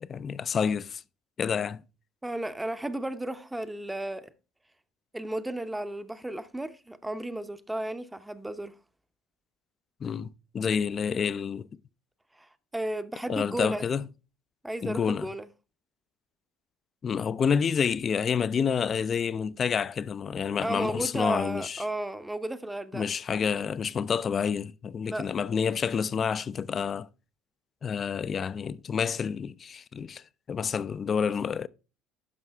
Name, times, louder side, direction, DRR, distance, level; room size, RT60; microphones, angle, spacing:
voice 1, 0.0-1.0 1.4-1.8 10.0-10.3 10.5-11.7 13.3-14.1 14.8-15.3 17.0-21.8 22.9-27.1 27.8-30.2 30.5-31.7, left 6 dB, 35° left, 0.4 m, -28 dB
voice 2, 2.2-4.3 5.1-8.7 12.4-13.8 14.6-15.5 20.6-23.1 25.1-25.3, right 1 dB, 10° right, 0.7 m, -34 dB
11.0 x 5.4 x 3.4 m
hypercardioid pair, 70°, 0 cm